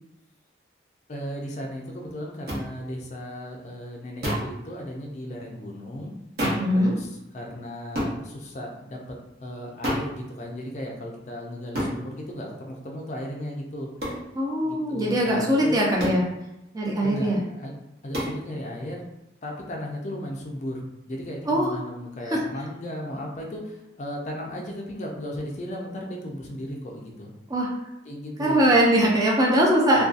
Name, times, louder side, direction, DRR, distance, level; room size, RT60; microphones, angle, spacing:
voice 1, 1.1-6.1 6.7-13.9 14.6-15.8 17.0-17.7 18.0-19.0 19.4-27.3 28.1-28.6, equal, 40° left, 0 dB, 0.4 m, -35 dB
sound 1, 2.5-2.6 4.2-4.6 6.4-6.7 8.0-8.2 9.8-10.1 11.8-12.0 14.0-14.2 16.0-16.3 18.1-18.4, equal, 55° right, 0.8 m, -27 dB
voice 2, 6.4-6.9 14.3-16.2 16.7-17.4 21.5-21.7 22.3-22.4 27.5-27.7 28.4-30.0, equal, 20° right, -3 dB, 0.4 m, -21 dB
2.6 x 2.2 x 2.4 m, 0.91 s
head